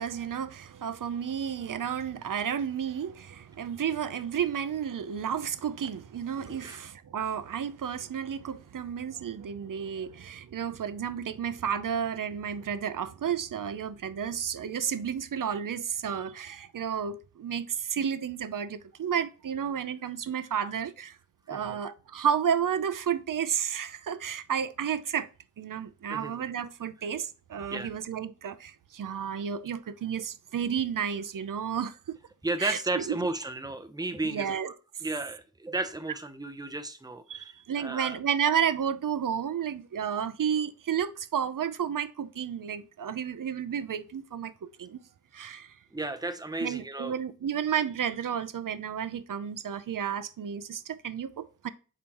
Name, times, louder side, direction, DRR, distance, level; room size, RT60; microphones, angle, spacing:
voice 1, 0.0-21.2 21.5-25.3 25.6-32.2 32.6-33.2 34.2-34.7 37.3-45.0 45.3-45.7 46.6-51.7, right 8 dB, 70° right, 0.6 m, -32 dB
voice 2, 6.5-6.8 21.5-21.8 26.1-26.4 27.7-27.9 32.4-34.7 35.0-38.2 45.9-47.2, right 2 dB, 10° right, 0.7 m, -34 dB
7.1 x 5.0 x 2.9 m
wide cardioid pair, 100°, 34 cm